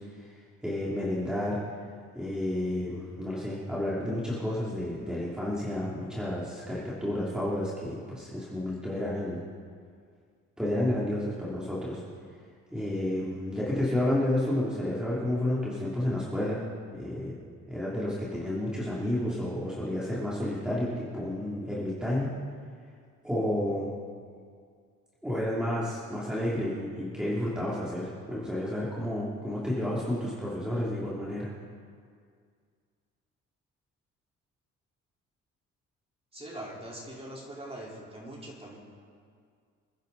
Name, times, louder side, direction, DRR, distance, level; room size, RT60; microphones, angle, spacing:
voice 1, 0.6-1.6 2.1-9.4 10.6-12.0 12.7-16.6 16.9-17.3 17.7-22.3 23.2-23.9 25.2-31.5, left 1 dB, 5° right, -8 dB, 3.1 m, -31 dB
voice 2, 36.3-38.8, right 1 dB, 20° right, -4 dB, 4.1 m, -42 dB
27.0 x 10.5 x 4.1 m, 2.1 s
cardioid pair, 90°, 30 cm